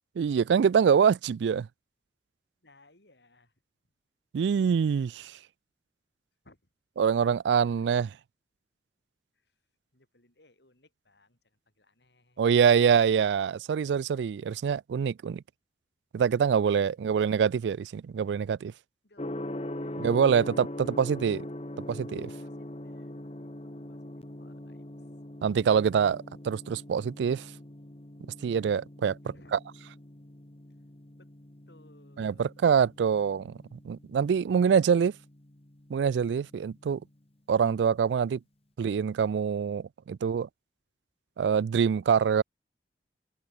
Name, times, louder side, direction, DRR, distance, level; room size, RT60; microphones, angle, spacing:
voice 1, 0.2-1.7 4.3-5.4 7.0-8.2 12.4-15.4 16.1-18.7 20.0-21.4 21.8-22.3 25.4-27.5 28.4-29.2 29.5-29.6 32.2-35.2 35.9-37.0 37.5-38.4 38.8-40.5 41.4-42.4, right 7 dB, 80° right, 0.3 m, -25 dB
voice 2, 2.6-3.6 6.4-6.7 7.5-7.9 9.3-9.6 9.9-12.4 19.0-20.1 22.4-25.1 29.2-29.5 31.2-31.3 31.7-32.9, left 2 dB, 75° left, 5.4 m, -63 dB
Gong, 19.2-37.0, left 1 dB, 35° left, 1.7 m, -42 dB
head